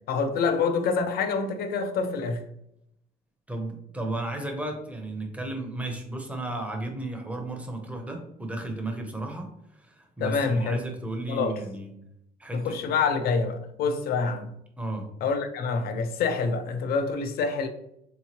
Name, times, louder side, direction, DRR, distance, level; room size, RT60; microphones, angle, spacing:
voice 1, 0.1-2.4 10.2-10.8 11.3-11.6 12.5-14.5 15.2-17.7, left 4 dB, 65° left, 0.5 m, -26 dB
voice 2, 3.5-11.9 12.4-12.7 14.8-15.1, right 2 dB, 10° right, 0.7 m, -34 dB
3.4 x 3.0 x 2.9 m
cardioid pair, 110°, 17 cm